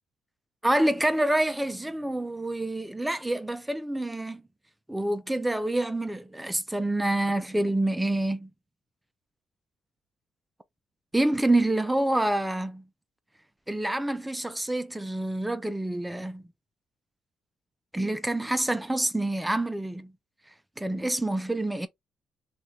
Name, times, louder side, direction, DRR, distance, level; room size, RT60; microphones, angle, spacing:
voice 1, 0.6-4.4 4.9-8.5 11.1-12.8 13.7-16.4 17.9-20.1 20.8-21.9, right 1 dB, 10° right, 0.4 m, -27 dB
3.1 x 2.4 x 2.6 m
cardioid pair, 90°, 0 cm